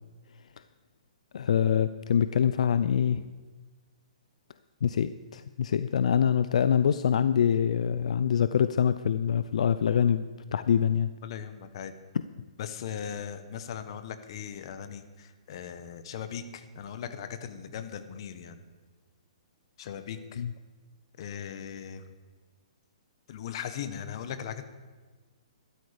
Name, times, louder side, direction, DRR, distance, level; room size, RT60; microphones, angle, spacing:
voice 1, 1.3-3.2 4.8-10.2 10.5-11.1 20.4-20.5, left 8 dB, 70° left, 13 dB, 0.5 m, -25 dB
voice 2, 11.2-11.9 12.6-18.6 19.8-20.4 21.2-22.1 23.3-24.6, left 8 dB, 45° left, 10 dB, 1.1 m, -39 dB
13.5 x 12.5 x 5.1 m, 1.4 s
hypercardioid pair, 160°, 4 cm